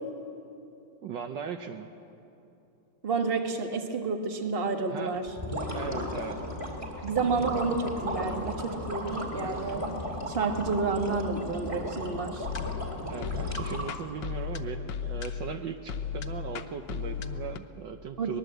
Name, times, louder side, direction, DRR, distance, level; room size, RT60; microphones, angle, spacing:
voice 1, 1.0-1.9 4.9-5.1 5.7-6.4 13.1-18.4, right 7 dB, 70° right, 6 dB, 1.4 m, -38 dB
voice 2, 3.0-5.3 7.0-9.8 10.3-12.5 18.2-18.3, right 4 dB, 30° right, 4 dB, 1.5 m, -30 dB
sound 1, 5.3-14.2, equal, 15° right, 2.9 m, -35 dB
sound 2, 12.4-17.6, left 7 dB, 65° left, 1.4 m, -36 dB
23.0 x 20.0 x 7.9 m, 2.7 s
omnidirectional pair, 2.2 m